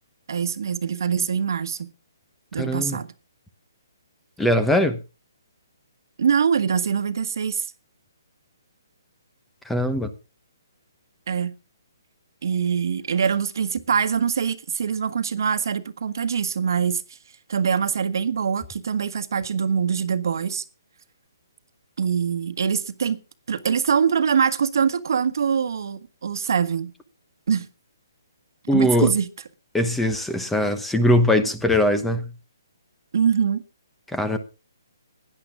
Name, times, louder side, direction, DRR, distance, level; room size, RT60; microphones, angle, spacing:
voice 1, 0.3-1.9 2.5-3.1 6.2-7.7 11.3-11.6 12.4-17.0 17.5-20.6 22.0-23.2 23.5-26.9 27.5-27.7 28.7-29.3 33.1-33.6, right 7 dB, 65° right, 1.4 m, -23 dB
voice 2, 2.6-3.0 4.4-5.0 9.6-10.1 28.7-29.1 29.7-32.3 34.1-34.4, left 1 dB, 5° left, 1.0 m, -21 dB
16.5 x 10.5 x 3.7 m
hypercardioid pair, 160°, 2 cm